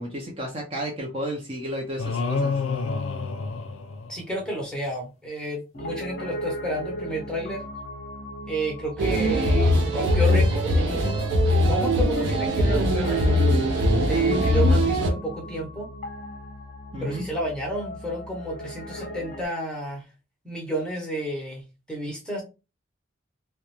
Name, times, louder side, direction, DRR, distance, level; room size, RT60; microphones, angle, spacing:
voice 1, 0.0-2.5 16.9-17.2, equal, 30° right, 0 dB, 0.5 m, -32 dB
sound 1, 2.0-4.5, left 4 dB, 85° left, 0.4 m, -28 dB
voice 2, 4.1-7.6 8.5-13.4 14.0-15.9 17.0-20.0 20.4-22.4, right 1 dB, 5° left, -2 dB, 0.7 m, -31 dB
Piano, 5.7-19.5, equal, 50° left, 0.7 m, -37 dB
sound 2, 9.0-15.1, equal, 75° right, 0.5 m, -21 dB
2.3 x 2.1 x 2.9 m, 0.29 s
head